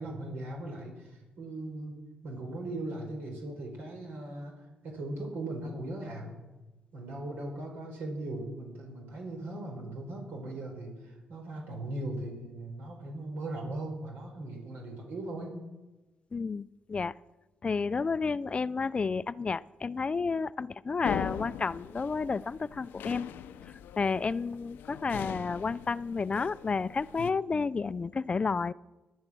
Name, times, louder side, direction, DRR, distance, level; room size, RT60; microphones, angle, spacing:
voice 1, 0.0-2.0 2.2-6.4 6.9-15.6, right 1 dB, 80° right, 1 dB, 4.2 m, -39 dB
voice 2, 16.3-17.1 17.6-23.3 24.0-28.7, left 4 dB, 35° left, 18 dB, 0.4 m, -31 dB
sound 1, 21.0-27.3, left 9 dB, 85° left, 0.7 m, -41 dB
17.0 x 10.5 x 6.2 m, 1.1 s
cardioid pair, 70°, 3 cm